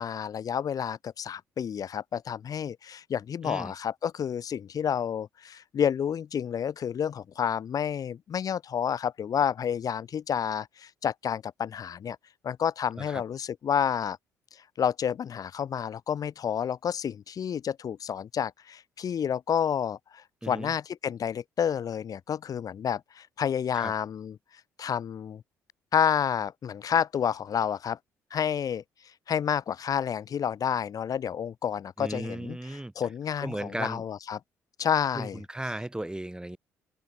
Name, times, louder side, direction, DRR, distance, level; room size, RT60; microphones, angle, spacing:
voice 1, 0.0-12.2 12.4-14.2 14.8-24.3 24.8-25.4 25.9-28.0 28.3-28.8 29.3-32.6 33.0-34.4 34.8-35.4, left 8 dB, 45° left, 2.7 m, -29 dB
voice 2, 20.4-20.7 23.7-23.9 32.0-32.9 33.4-34.0 35.1-36.6, right 1 dB, 10° right, 2.8 m, -36 dB
open air
figure-of-eight pair, 45°, 8 cm